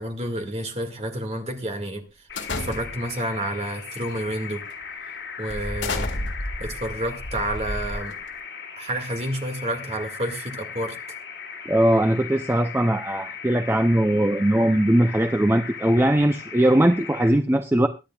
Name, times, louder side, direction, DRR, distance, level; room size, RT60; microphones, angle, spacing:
voice 1, 0.0-2.0 2.3-4.6 5.4-6.1 6.6-8.2 8.8-11.0, right 1 dB, 35° right, 6 dB, 2.0 m, -29 dB
sound 1, 2.3-17.3, left 6 dB, 65° left, 4.6 m, -38 dB
sound 2, 2.4-3.2 4.0-4.2 4.7-4.8 5.5-8.4, left 2 dB, 85° left, 2.0 m, -31 dB
voice 2, 11.7-17.9, right 1 dB, 15° right, 7 dB, 0.5 m, -20 dB
23.0 x 10.0 x 2.4 m, 0.26 s
head